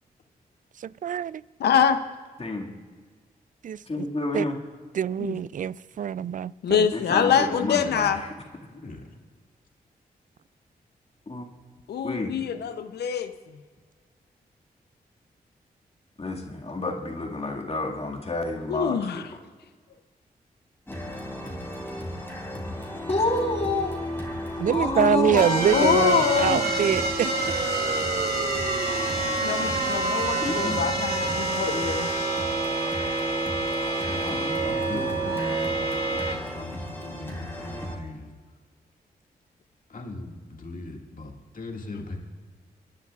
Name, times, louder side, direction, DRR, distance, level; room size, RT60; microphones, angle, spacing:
voice 1, 0.8-1.4 3.6-4.1 4.3-4.5 4.9-6.9 24.6-27.3, right 9 dB, 50° right, 20 dB, 0.4 m, -25 dB
voice 2, 1.6-2.0 5.2-5.4 6.6-8.2 11.9-13.3 18.7-19.3 25.7-26.6 29.4-32.1, left 7 dB, 80° left, 9 dB, 0.7 m, -24 dB
voice 3, 3.9-4.6 6.9-8.3 11.3-11.4 12.0-12.3 16.2-19.3 23.1-24.0 24.7-25.9 30.4-30.8 34.2-35.3, left 2 dB, 35° left, 1 dB, 2.0 m, -29 dB
voice 4, 8.7-9.0 33.9-38.3 39.9-42.2, left 2 dB, 55° left, 1 dB, 2.1 m, -39 dB
sound 1, 20.9-38.0, left 1 dB, 15° left, 3.2 m, -34 dB
sound 2, 25.4-36.3, right 3 dB, 70° right, 2.0 m, -27 dB
27.0 x 10.5 x 2.4 m, 1.5 s
cardioid pair, 50°, 17 cm